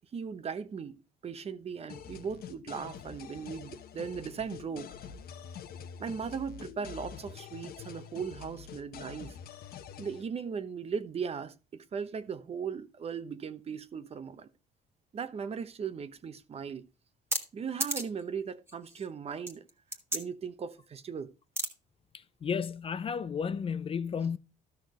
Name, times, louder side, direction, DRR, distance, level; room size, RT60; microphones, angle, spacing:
voice 1, 0.1-4.9 6.0-9.4 10.0-14.5 15.1-16.9 17.5-19.7 20.1-21.3, right 6 dB, 35° right, 0.9 m, -38 dB
sound 1, 1.9-10.2, left 8 dB, 65° left, 1.0 m, -46 dB
sound 2, 17.3-17.4 17.8-18.2 18.7-19.1 19.5-20.2 21.6-21.7, right 1 dB, 15° right, 1.7 m, -31 dB
voice 2, 22.4-24.4, left 6 dB, 35° left, 0.5 m, -32 dB
13.0 x 6.1 x 3.1 m
cardioid pair, 110°, 17 cm